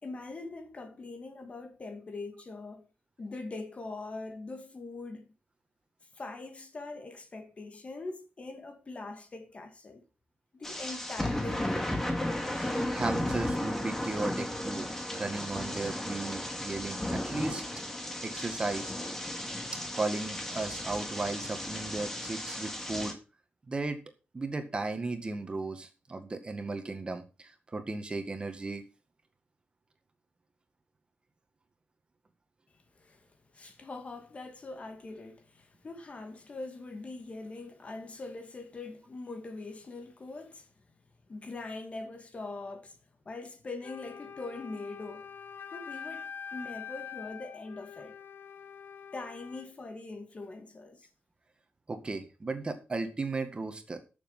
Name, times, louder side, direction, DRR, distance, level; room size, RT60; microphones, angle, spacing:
voice 1, 0.0-2.9 3.2-5.3 6.1-10.0 10.5-11.9 32.9-40.7 41.3-43.0 43.3-45.3 45.7-48.2 49.1-51.1, left 3 dB, 40° left, 2.2 m, -42 dB
sound 1, 10.6-23.1, left 1 dB, 10° left, 2.3 m, -34 dB
voice 2, 12.6-14.9 15.1-17.6 18.2-18.9 19.9-23.2 23.7-24.0 24.3-28.8 51.9-54.0, right 3 dB, 30° right, 1.9 m, -35 dB
Wind instrument woodwind instrument, 43.8-49.7, left 7 dB, 75° left, 1.1 m, -45 dB
13.0 x 7.1 x 5.6 m
wide cardioid pair, 125°, 3 cm